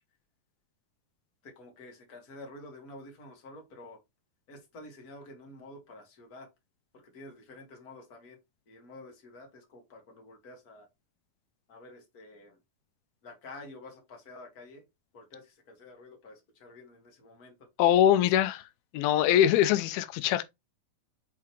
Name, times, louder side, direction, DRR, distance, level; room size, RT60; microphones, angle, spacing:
voice 1, 1.4-4.0 4.5-6.5 6.9-8.4 8.7-10.9 11.7-12.6 13.2-14.8 15.1-17.5, left 2 dB, 30° left, 2.1 m, -49 dB
voice 2, 17.8-18.6 18.9-20.4, left 11 dB, 90° left, 2.5 m, -23 dB
7.7 x 4.6 x 3.0 m
omnidirectional pair, 4.3 m